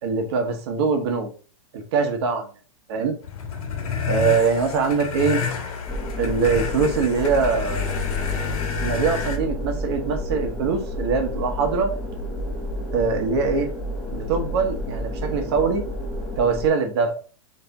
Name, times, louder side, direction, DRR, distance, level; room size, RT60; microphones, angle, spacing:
voice 1, 0.0-1.3 1.7-2.5 2.9-3.1 4.1-5.4 6.2-7.8 8.8-11.9 12.9-13.7 14.1-15.8 16.4-17.1, right 5 dB, 45° right, 4 dB, 1.1 m, -23 dB
sound 1, 3.2-9.4, left 6 dB, 80° left, 1.3 m, -29 dB
sound 2, 5.9-16.7, equal, ahead, 0.5 m, -30 dB
3.4 x 3.2 x 4.0 m, 0.38 s
supercardioid pair, 175°, 18 cm